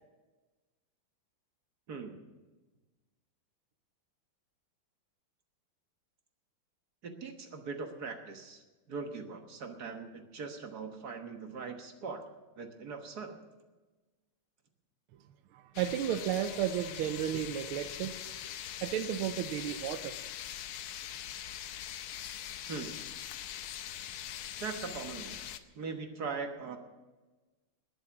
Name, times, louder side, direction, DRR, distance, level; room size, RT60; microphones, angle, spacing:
voice 1, 1.9-2.2 7.0-8.6 8.9-12.2 12.6-13.4 22.7-23.0 24.6-25.4 25.7-26.8, right 5 dB, 50° right, 5 dB, 1.7 m, -40 dB
voice 2, 15.5-18.3 18.8-20.2, right 10 dB, 90° right, 9 dB, 1.5 m, -33 dB
sound 1, 15.7-25.6, left 11 dB, 85° left, 1.6 m, -42 dB
20.5 x 7.3 x 7.0 m, 1.2 s
omnidirectional pair, 2.3 m